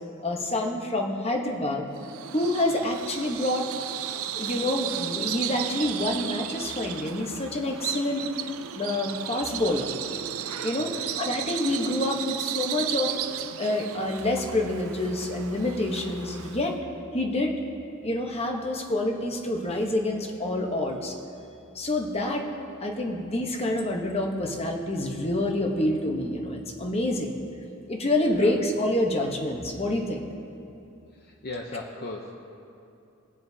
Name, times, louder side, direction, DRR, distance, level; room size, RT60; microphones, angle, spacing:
voice 1, 0.2-1.9 2.3-3.7 4.3-8.3 8.7-9.9 10.6-10.9 11.2-13.2 13.6-16.7 17.1-17.5 18.0-21.1 21.7-22.4 22.8-27.4 27.9-30.2, left 1 dB, 30° left, 2 dB, 1.0 m, -27 dB
Bird vocalization bird call bird song, 2.0-16.8, right 10 dB, 90° right, 0.5 m, -34 dB
voice 2, 31.1-32.3, left 2 dB, 50° left, 1 dB, 0.7 m, -38 dB
20.0 x 7.5 x 2.8 m, 2.7 s
head